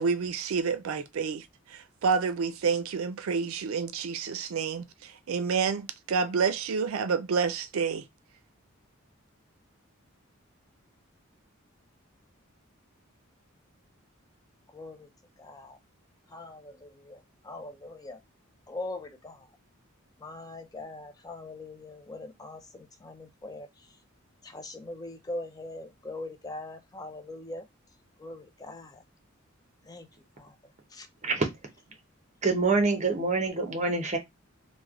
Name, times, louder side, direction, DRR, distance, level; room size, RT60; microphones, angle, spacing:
voice 1, 0.0-8.0, right 5 dB, 85° right, 0.4 m, -29 dB
voice 2, 14.7-15.1 15.4-15.8 16.3-18.2 18.7-19.5 20.2-23.7 24.4-27.7 28.2-29.0 29.9-30.1 30.4-30.6 30.9-31.1, left 2 dB, 20° left, 0.4 m, -41 dB
voice 3, 32.4-34.2, right 3 dB, 35° right, 0.8 m, -26 dB
3.2 x 2.1 x 3.5 m
head